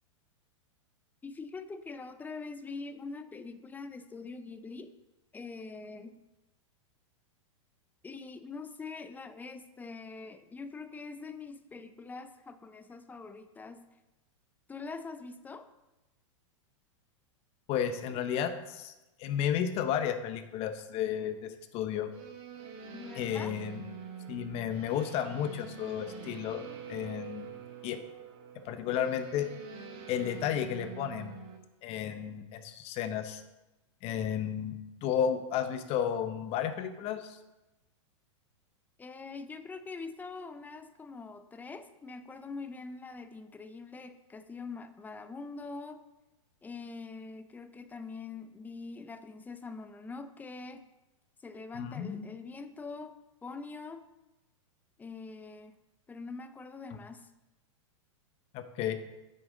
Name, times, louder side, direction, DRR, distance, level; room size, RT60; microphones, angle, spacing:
voice 1, 1.2-4.9 5.3-6.2 8.0-13.9 14.7-15.7 22.9-23.6 39.0-46.0 46.6-50.8 51.4-53.1 53.4-54.0 55.0-55.7 56.1-57.3, left 4 dB, 10° left, 10 dB, 0.4 m, -44 dB
voice 2, 17.7-18.9 19.2-22.1 23.2-23.8 24.3-26.6 26.9-27.5 27.8-28.0 28.7-29.5 30.1-31.4 31.8-33.4 34.0-37.4 51.7-52.3 58.5-58.9, left 9 dB, 40° left, 10 dB, 0.8 m, -32 dB
sound 1, 22.1-31.6, right 7 dB, 55° right, 1.4 m, -46 dB
8.5 x 6.3 x 3.8 m, 1.0 s
hypercardioid pair, 120°, 17 cm